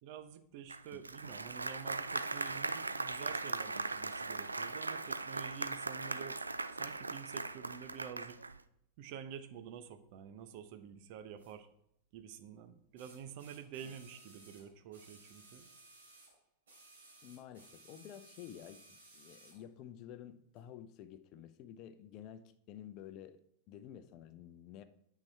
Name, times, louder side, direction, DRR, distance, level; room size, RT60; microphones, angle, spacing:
voice 1, 0.0-6.4 6.8-8.4 9.0-11.7 12.1-15.7, right 8 dB, 45° right, 10 dB, 0.8 m, -49 dB
Applause, 0.7-8.6, right 3 dB, 80° right, 0.4 m, -39 dB
sound 1, 11.4-11.5 13.0-16.4 16.7-19.6 20.6-20.7, right 2 dB, 65° right, 3.0 m, -59 dB
voice 2, 17.2-24.8, left 10 dB, 40° left, 12 dB, 0.6 m, -51 dB
8.9 x 5.8 x 4.5 m, 0.76 s
figure-of-eight pair, 90°, 0 cm